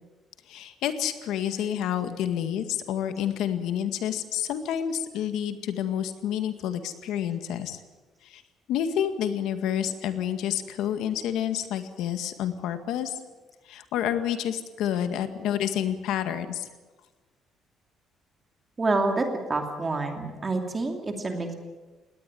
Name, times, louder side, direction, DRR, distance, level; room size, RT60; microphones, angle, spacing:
voice 1, 0.5-7.8 8.2-8.4 8.7-13.2 13.7-16.7, left 10 dB, 80° left, 9 dB, 1.9 m, -29 dB
voice 2, 18.8-19.2 19.5-21.5, right 3 dB, 20° right, 4 dB, 2.7 m, -27 dB
20.0 x 18.0 x 9.3 m, 1.3 s
cardioid pair, 180°, 0 cm